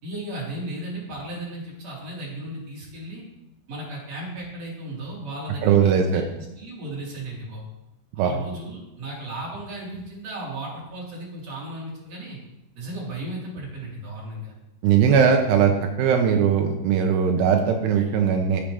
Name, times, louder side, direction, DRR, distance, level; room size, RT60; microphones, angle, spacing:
voice 1, 0.0-3.2 3.7-7.6 8.1-12.4 12.8-14.5, right 1 dB, 40° right, -5 dB, 3.9 m, -35 dB
voice 2, 5.6-6.2 8.2-8.3 14.8-15.7 16.0-18.6, right 7 dB, 85° right, 3 dB, 2.9 m, -19 dB
14.0 x 7.3 x 3.4 m, 0.92 s
omnidirectional pair, 4.8 m